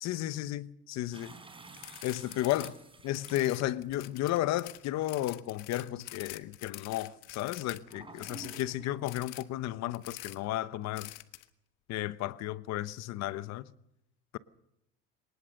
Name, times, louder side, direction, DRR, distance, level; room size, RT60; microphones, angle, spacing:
voice 1, 0.0-1.4 2.0-2.8 3.0-11.1 11.9-13.7, left 14 dB, 60° left, 1.0 m, -33 dB
sound 1, 1.1-3.9 4.7-4.8 7.6-9.2, right 3 dB, 15° right, 4.7 m, -51 dB
sound 2, 1.8-2.7 3.0-8.7 9.0-9.4 9.9-10.4 10.9-11.4, left 19 dB, 80° left, 1.4 m, -46 dB
23.5 x 19.5 x 6.6 m
supercardioid pair, 105°, 30 cm